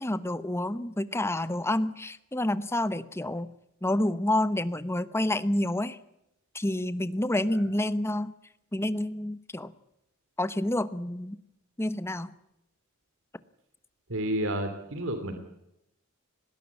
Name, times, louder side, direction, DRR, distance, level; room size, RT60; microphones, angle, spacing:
voice 1, 0.0-3.5 3.8-6.0 6.5-8.3 8.7-9.7 10.4-11.4 11.8-12.3, left 1 dB, 10° left, 15 dB, 0.9 m, -28 dB
voice 2, 14.1-15.4, right 1 dB, 65° right, 8 dB, 2.6 m, -31 dB
20.0 x 17.5 x 8.4 m, 0.83 s
head